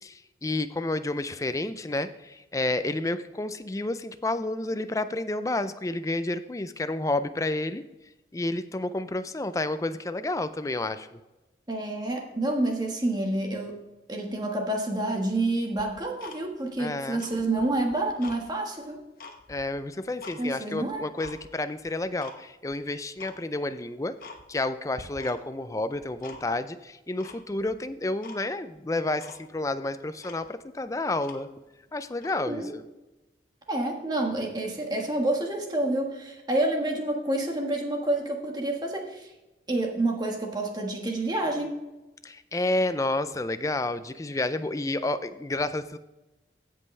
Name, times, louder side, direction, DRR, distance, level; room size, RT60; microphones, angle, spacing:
voice 1, 0.0-7.8 8.3-11.1 16.8-17.2 19.5-24.2 24.5-31.5 31.9-32.8 42.2-46.0, left 2 dB, 20° left, 11 dB, 0.4 m, -30 dB
voice 2, 11.7-13.7 14.1-19.0 20.4-21.0 32.3-32.7 33.7-39.3 39.7-41.8, right 2 dB, 25° right, 1 dB, 1.5 m, -28 dB
Tick-tock, 15.8-16.8 17.1-18.4 18.8-20.4 20.8-21.4 21.9-22.4 22.7-22.8 23.2-23.4 23.8-23.9 24.2-24.7 24.9-25.6 25.9-26.7 27.2-27.8 28.2-28.4 28.8-28.9 29.2-29.4 29.9-30.0 30.2-31.7 32.1-32.4, left 3 dB, 55° left, 1.1 m, -46 dB
16.0 x 5.4 x 3.3 m, 1.0 s
head